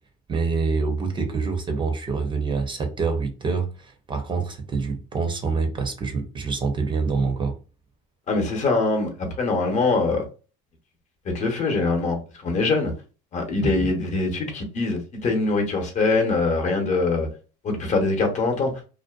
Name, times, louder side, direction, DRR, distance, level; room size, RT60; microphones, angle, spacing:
voice 1, 0.3-7.6 13.6-13.9, right 4 dB, 25° right, 0.6 m, -26 dB
voice 2, 8.3-10.2 11.2-12.9 13.3-17.3 17.6-18.7, left 3 dB, 40° left, 0.9 m, -23 dB
2.5 x 2.1 x 2.3 m
supercardioid pair, 110°, 18 cm